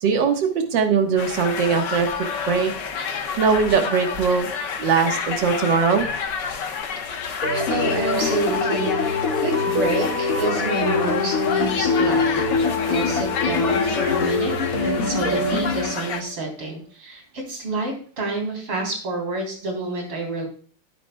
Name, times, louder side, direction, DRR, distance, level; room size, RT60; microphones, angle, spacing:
voice 1, 0.0-2.7 3.4-4.5 4.8-6.1, right 5 dB, 60° right, 4 dB, 2.0 m, -21 dB
sound 1, 1.2-16.2, left 6 dB, 60° left, 1.6 m, -29 dB
voice 2, 7.3-20.5, right 2 dB, 80° right, 1 dB, 4.5 m, -28 dB
sound 2, 7.4-16.3, left 3 dB, 40° left, 2.8 m, -24 dB
13.5 x 10.0 x 2.2 m, 0.43 s
omnidirectional pair, 2.4 m